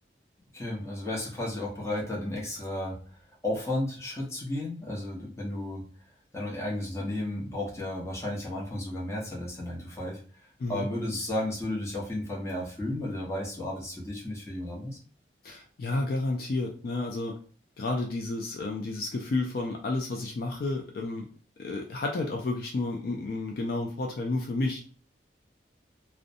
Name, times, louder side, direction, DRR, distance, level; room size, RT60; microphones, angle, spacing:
voice 1, 0.5-3.0 3.4-5.8 6.3-10.2 10.7-15.0, left 1 dB, 15° left, -4 dB, 0.8 m, -33 dB
voice 2, 15.4-17.4 17.8-21.3 21.6-24.8, left 2 dB, 55° left, 1 dB, 0.3 m, -31 dB
2.6 x 2.1 x 2.5 m, 0.41 s
head